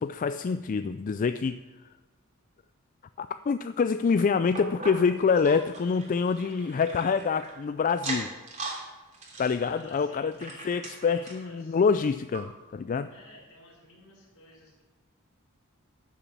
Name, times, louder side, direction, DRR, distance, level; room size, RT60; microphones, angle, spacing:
voice 1, 0.0-1.6 3.2-8.3 9.4-13.1, left 5 dB, 40° left, 11 dB, 0.3 m, -26 dB
sound 1, 4.5-7.5 7.9-8.8 9.1-11.5 12.0-12.1 12.3-12.4 13.1-13.2, right 3 dB, 35° right, 3.0 m, -39 dB
voice 2, 9.6-11.8 13.1-14.8, left 2 dB, 65° left, -4 dB, 4.3 m, -51 dB
12.0 x 7.1 x 7.3 m, 1.2 s
head